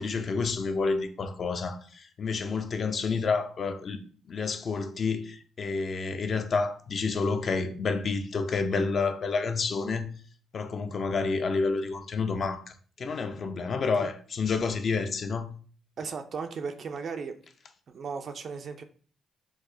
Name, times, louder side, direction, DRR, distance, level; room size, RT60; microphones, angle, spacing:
voice 1, 0.0-4.0 4.3-10.1 10.5-15.5, left 4 dB, 50° left, 0.4 m, -29 dB
voice 2, 16.0-17.4 17.9-18.8, right 5 dB, 55° right, 0.3 m, -36 dB
4.6 x 2.0 x 2.6 m
cardioid pair, 90°, 0 cm